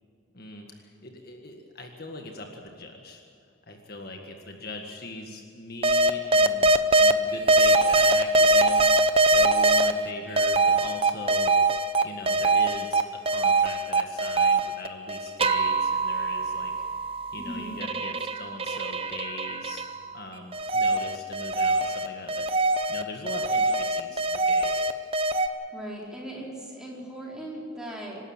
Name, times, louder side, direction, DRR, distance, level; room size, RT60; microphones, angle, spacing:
voice 1, 0.3-3.2 3.7-6.7 7.0-8.9 9.3-11.5 12.0-16.7 17.3-19.9 20.1-22.5 22.9-24.9, left 2 dB, 50° left, 2 dB, 1.8 m, -40 dB
sound 1, 5.8-7.1 7.5-9.9 10.4-13.0 13.3-20.1 20.5-25.5, right 2 dB, 30° right, 0.7 m, -23 dB
voice 2, 17.4-17.8 25.7-28.2, right 1 dB, 5° right, -4 dB, 4.6 m, -38 dB
26.5 x 12.5 x 8.9 m, 2.5 s
head